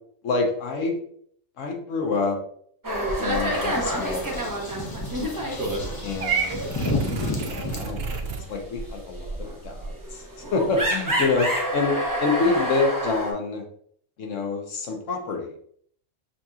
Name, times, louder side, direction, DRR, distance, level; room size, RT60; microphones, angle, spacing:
voice 1, 0.2-1.0 1.6-2.4 3.2-5.3 6.0-6.4 7.2-10.2 10.5-11.9 12.2-13.6 14.2-15.6, left 4 dB, 80° left, 2 dB, 1.2 m, -27 dB
sound 1, 2.8-6.2 6.5-6.7 7.1-13.3, right 1 dB, 20° right, 0.7 m, -28 dB
sound 2, 3.1-7.8, left 1 dB, 25° left, 0.5 m, -32 dB
Purr / Meow, 6.2-8.4, right 6 dB, 60° right, 0.7 m, -30 dB
5.7 x 2.8 x 2.4 m, 0.62 s
omnidirectional pair, 1.3 m